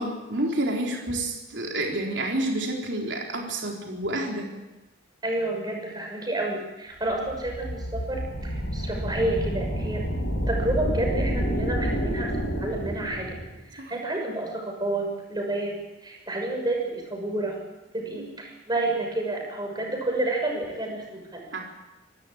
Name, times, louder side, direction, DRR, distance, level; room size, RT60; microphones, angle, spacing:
voice 1, 0.0-4.5 13.8-13.9 18.2-18.3 21.5-21.6, right 1 dB, 70° right, 0 dB, 4.0 m, -29 dB
voice 2, 5.2-10.0 10.5-13.4 13.7-15.8 16.0-17.6 17.9-21.5, right 2 dB, 20° right, 1 dB, 6.3 m, -30 dB
sound 1, 7.0-13.5, equal, 80° left, 5.5 m, -29 dB
26.0 x 13.5 x 8.8 m, 1.0 s
head